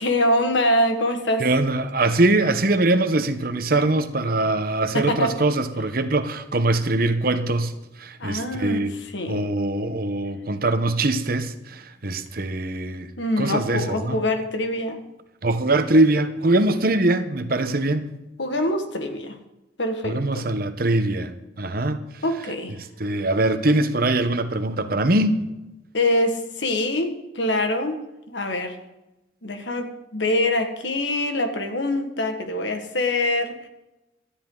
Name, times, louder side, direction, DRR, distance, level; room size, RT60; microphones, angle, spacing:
voice 1, 0.0-1.5 4.9-5.4 8.2-9.5 13.2-15.0 18.4-19.4 19.8-20.5 22.2-22.8 25.9-28.0 28.3-28.7 29.4-33.6, left 1 dB, 75° left, 1.7 m, -24 dB
voice 2, 1.4-7.7 8.0-8.9 9.3-13.1 13.4-14.2 15.4-18.1 20.0-21.3 21.6-22.0 23.0-25.4, right 2 dB, 50° right, 1.1 m, -22 dB
17.0 x 13.0 x 3.9 m
head